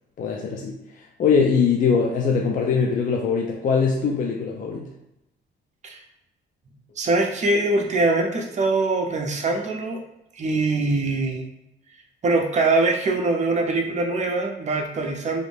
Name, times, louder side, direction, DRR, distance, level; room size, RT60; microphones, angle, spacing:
voice 1, 0.2-0.8 1.2-4.9, left 5 dB, 45° left, 0 dB, 0.4 m, -22 dB
voice 2, 7.0-10.0 10.3-11.5 12.2-15.4, right 2 dB, 35° right, 2 dB, 0.5 m, -23 dB
2.5 x 2.0 x 3.2 m, 0.87 s
cardioid pair, 90°, 20 cm